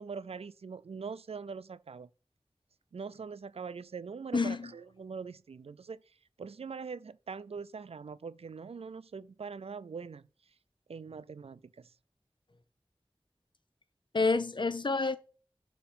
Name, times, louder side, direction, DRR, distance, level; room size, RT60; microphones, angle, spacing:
voice 1, 0.0-2.1 2.9-6.0 6.4-10.3 10.9-11.9, right 5 dB, 90° right, 0.4 m, -42 dB
voice 2, 4.3-4.7 14.1-15.2, left 3 dB, 50° left, 0.6 m, -28 dB
6.9 x 3.0 x 5.0 m
wide cardioid pair, 55°, 10 cm